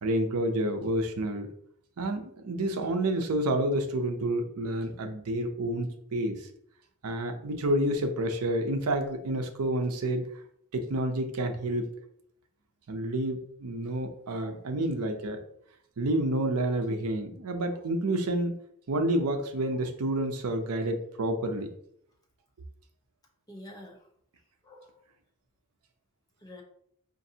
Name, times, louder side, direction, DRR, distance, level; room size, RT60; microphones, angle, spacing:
voice 1, 0.0-1.5 2.0-6.5 7.0-10.3 10.7-11.9 12.9-15.4 16.0-18.5 18.9-21.7, right 1 dB, 75° right, 6 dB, 0.6 m, -29 dB
voice 2, 23.5-24.0 24.6-25.0 26.4-26.6, left 1 dB, 15° left, 0 dB, 0.8 m, -48 dB
5.1 x 2.5 x 2.7 m, 0.69 s
head